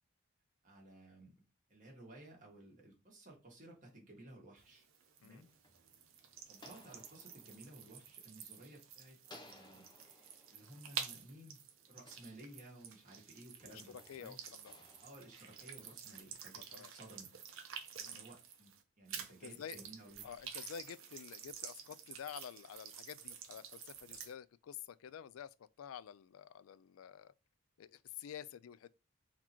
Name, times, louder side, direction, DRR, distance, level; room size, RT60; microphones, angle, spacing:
voice 1, 0.6-1.4 1.7-4.9 5.2-5.5 6.5-9.2 9.5-14.4 15.0-17.3 18.1-20.5, right 1 dB, 35° right, 1.7 m, -56 dB
sound 1, 4.6-18.8 19.1-24.3, right 7 dB, 75° right, 0.8 m, -50 dB
sound 2, 5.1-8.8 9.2-13.0 13.6-16.3, left 1 dB, 20° left, 0.7 m, -62 dB
voice 2, 13.7-14.8 16.6-16.9 18.0-18.3 19.4-19.8 20.2-27.3 27.8-28.9, left 8 dB, 85° left, 0.3 m, -50 dB
4.1 x 2.8 x 4.4 m
head